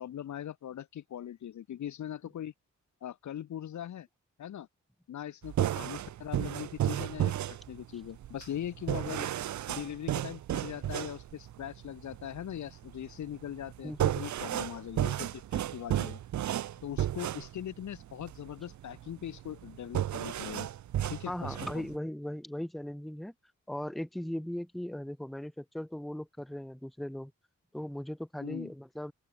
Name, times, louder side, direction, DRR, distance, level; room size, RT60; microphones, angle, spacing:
voice 1, 0.0-2.5 3.0-4.1 4.4-4.7 5.1-9.3 9.7-16.2 16.8-20.7 21.1-21.9 28.4-28.7, left 10 dB, 70° left, 0.7 m, -41 dB
sound 1, 5.4-22.0, right 12 dB, 70° right, 0.6 m, -34 dB
voice 2, 13.8-14.2 21.3-23.3 23.7-27.3 27.7-29.1, left 1 dB, ahead, 0.8 m, -38 dB
open air
cardioid pair, 95°, 30 cm